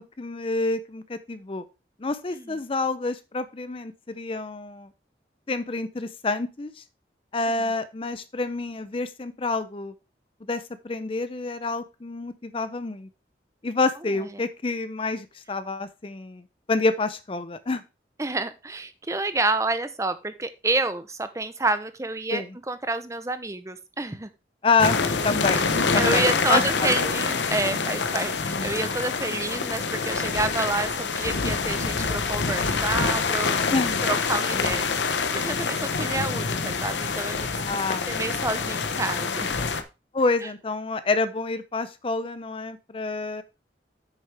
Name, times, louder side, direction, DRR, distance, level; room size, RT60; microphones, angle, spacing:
voice 1, 0.0-1.6 2.0-4.9 5.5-6.8 7.3-9.9 10.5-13.1 13.6-16.4 16.7-17.8 22.3-22.5 24.6-25.0 25.2-26.9 29.3-29.4 33.7-34.0 37.7-38.0 40.1-43.4, left 3 dB, 30° left, 12 dB, 0.5 m, -28 dB
voice 2, 18.2-24.3 25.9-33.6 34.0-35.2 35.4-39.6, right 2 dB, 15° right, 11 dB, 0.6 m, -29 dB
sound 1, 24.8-39.8, left 4 dB, 85° left, 0.8 m, -26 dB
8.2 x 6.5 x 3.3 m, 0.28 s
head